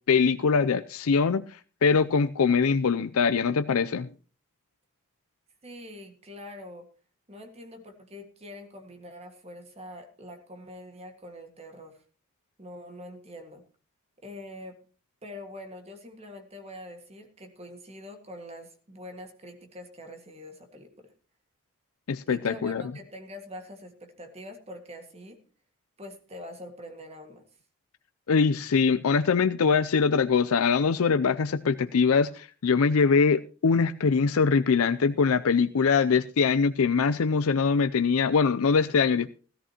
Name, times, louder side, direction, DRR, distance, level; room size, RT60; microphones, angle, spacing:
voice 1, 0.1-4.1 22.1-22.8 28.3-39.4, left 5 dB, 75° left, 11 dB, 0.5 m, -23 dB
voice 2, 5.6-6.9 7.3-12.0 12.6-13.6 14.2-14.8 15.2-21.1 22.3-25.4 26.0-27.5, left 1 dB, 30° right, 5 dB, 1.8 m, -44 dB
16.5 x 14.0 x 2.9 m, 0.38 s
head